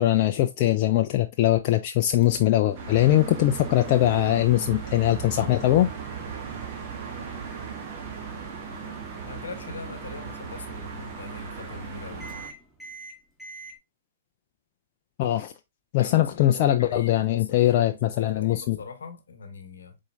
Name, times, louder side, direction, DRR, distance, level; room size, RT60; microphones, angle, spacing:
voice 1, 0.0-5.9 15.2-15.5 15.9-18.8, left 14 dB, 40° left, 0.4 m, -21 dB
Microwave oven, 2.2-13.7, right 3 dB, ahead, 1.2 m, -44 dB
sound 1, 2.7-12.5, right 7 dB, 50° right, 1.1 m, -38 dB
voice 2, 9.2-12.3 16.0-20.0, left 5 dB, 75° left, 1.0 m, -41 dB
4.2 x 3.7 x 2.7 m
figure-of-eight pair, 120°, 0 cm